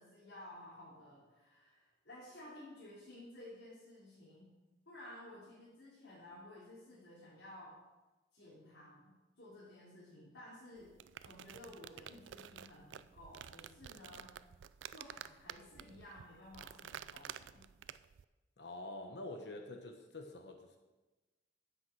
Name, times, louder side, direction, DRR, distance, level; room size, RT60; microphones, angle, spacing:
voice 1, 0.0-4.5 4.9-7.8 8.3-10.9 11.2-14.3 14.9-17.6, left 1 dB, 80° left, -8 dB, 3.5 m, -54 dB
sound 1, 10.8-18.2, right 9 dB, 85° right, 0.4 m, -51 dB
voice 2, 18.6-20.8, left 2 dB, 65° left, 4 dB, 1.0 m, -47 dB
9.4 x 8.1 x 6.1 m, 1.1 s
head